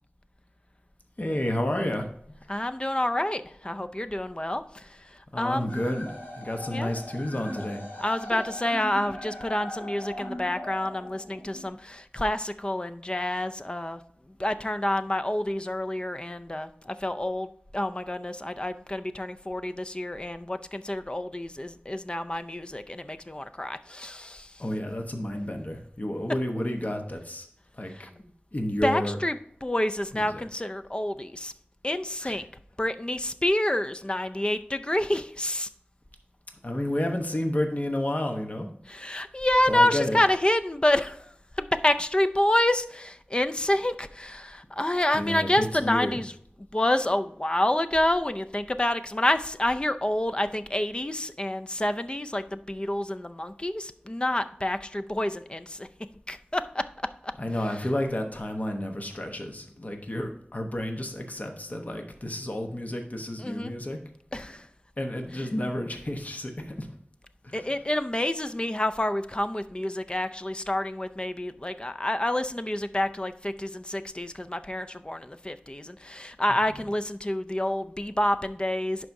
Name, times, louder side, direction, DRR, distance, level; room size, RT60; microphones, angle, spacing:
voice 1, 1.2-2.1 5.3-7.8 8.1-8.2 24.6-27.5 27.7-29.2 30.1-30.5 32.2-32.5 36.6-39.0 39.6-40.2 45.1-46.2 57.4-64.0 65.0-66.9 67.4-67.9 76.5-76.8, left 1 dB, 45° left, 4 dB, 1.0 m, -31 dB
voice 2, 2.5-5.7 6.7-6.9 8.0-14.0 14.4-24.5 28.8-31.5 31.8-32.5 32.8-35.7 38.9-46.3 46.7-55.9 56.3-56.8 63.4-63.7 64.3-64.7 67.5-79.1, left 1 dB, 25° left, 9 dB, 0.4 m, -28 dB
sound 1, 5.7-11.7, left 1 dB, 70° left, 2.3 m, -39 dB
11.0 x 4.7 x 2.7 m, 0.66 s
wide cardioid pair, 45°, 4 cm